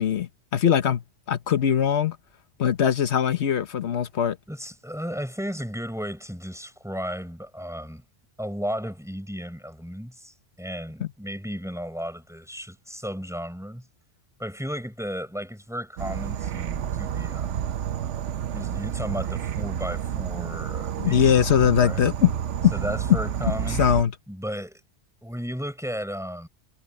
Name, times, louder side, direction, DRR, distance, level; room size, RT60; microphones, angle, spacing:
voice 1, 0.0-2.2 2.6-4.4 11.0-11.1 21.0-22.3 22.6-22.7 23.8-24.1, left 9 dB, 65° left, 1.3 m, -21 dB
voice 2, 4.5-8.0 8.4-13.9 14.4-17.6 18.5-21.4 21.8-22.1 22.7-23.8 24.3-24.8 25.2-26.5, equal, ahead, 4.5 m, -34 dB
Insect / Frog, 16.0-24.0, right 9 dB, 75° right, 1.0 m, -30 dB
omnidirectional pair, 1.2 m